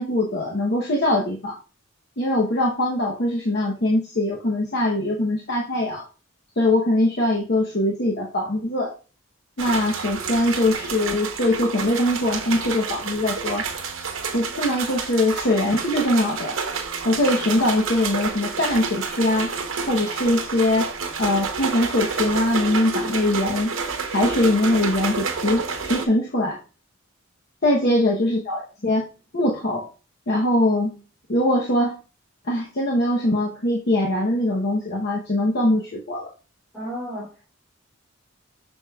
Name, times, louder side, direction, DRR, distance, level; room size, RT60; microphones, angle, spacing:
voice 1, 0.0-1.6 2.2-6.0 6.6-8.9 9.6-13.6 14.3-16.6 17.0-19.5 19.9-20.9 21.2-23.7 24.1-26.6 27.6-29.1 29.3-29.9 30.3-31.0 31.3-31.9 32.5-36.3, left 1 dB, 50° left, -2 dB, 0.9 m, -22 dB
sound 1, 9.6-26.1, right 5 dB, 70° right, 0.9 m, -29 dB
voice 2, 36.7-37.3, right 1 dB, ahead, -8 dB, 2.5 m, -33 dB
7.4 x 6.2 x 2.3 m, 0.35 s
head